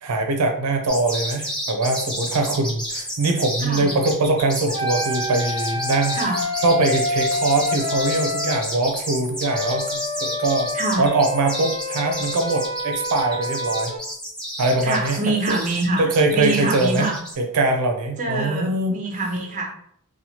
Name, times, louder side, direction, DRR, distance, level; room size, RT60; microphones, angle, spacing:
voice 1, 0.0-6.2 6.6-10.7 11.0-13.9 14.6-15.6 16.0-17.1 17.4-19.0, right 2 dB, 90° right, 4 dB, 0.4 m, -22 dB
sound 1, 0.9-17.3, equal, 5° left, 0.7 m, -31 dB
sound 2, 4.7-8.6 9.4-14.0, left 2 dB, 70° left, 0.8 m, -28 dB
voice 2, 10.7-11.1 14.8-17.2 18.2-19.7, right 2 dB, 35° right, 0 dB, 0.6 m, -25 dB
2.9 x 2.1 x 2.8 m, 0.65 s
head